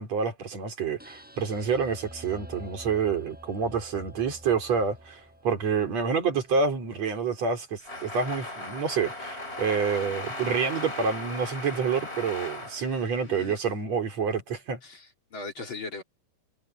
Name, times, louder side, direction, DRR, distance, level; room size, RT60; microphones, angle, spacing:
voice 1, 0.0-14.8, right 5 dB, 50° right, 4.9 m, -28 dB
sound 1, 1.0-7.1, equal, ahead, 7.3 m, -48 dB
sound 2, 7.8-13.6, left 1 dB, 15° left, 4.2 m, -37 dB
voice 2, 14.8-16.0, left 3 dB, 35° left, 3.3 m, -39 dB
omnidirectional pair, 4.1 m